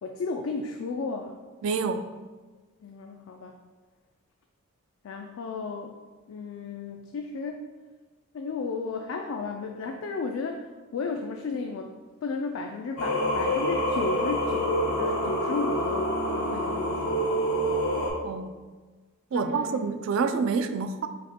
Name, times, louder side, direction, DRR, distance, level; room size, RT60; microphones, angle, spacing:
voice 1, 0.0-1.4 2.8-3.6 5.0-6.0 6.3-7.6 8.3-11.9 12.2-17.3 19.3-19.8, left 4 dB, 70° left, 4 dB, 0.3 m, -34 dB
voice 2, 1.6-2.1 18.2-18.5 19.3-21.1, right 5 dB, 65° right, 9 dB, 0.3 m, -27 dB
Singing, 13.0-18.1, equal, 85° left, 1.2 m, -27 dB
4.9 x 2.1 x 4.3 m, 1.3 s
head